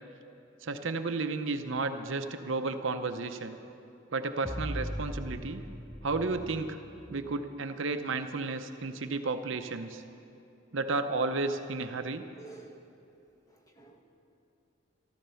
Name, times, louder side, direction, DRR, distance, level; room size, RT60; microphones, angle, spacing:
voice 1, 0.6-3.6 4.1-5.6 6.0-6.8 7.1-10.0 10.7-12.3, right 3 dB, 70° right, 8 dB, 0.7 m, -32 dB
sound 1, 4.4-7.5, equal, ahead, 0.5 m, -40 dB
voice 2, 12.4-12.8 13.5-14.0, right 3 dB, 15° left, 2 dB, 1.2 m, -51 dB
13.5 x 13.0 x 7.0 m, 2.7 s
head